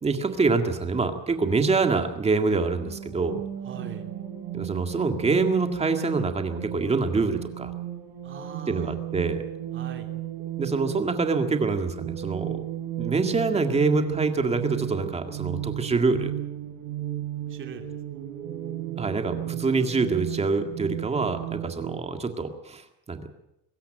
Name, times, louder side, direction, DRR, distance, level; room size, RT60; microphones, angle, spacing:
voice 1, 0.0-3.4 4.5-7.7 8.7-9.4 10.6-12.6 13.0-16.3 19.0-23.3, right 4 dB, 15° right, 6 dB, 2.0 m, -25 dB
sound 1, 2.8-22.0, right 12 dB, 90° right, 3.7 m, -35 dB
voice 2, 3.6-4.1 8.2-8.9 9.7-10.1 17.5-18.3, right 6 dB, 30° right, 5 dB, 2.8 m, -42 dB
23.5 x 13.5 x 8.9 m, 0.87 s
cardioid pair, 170°, 38 cm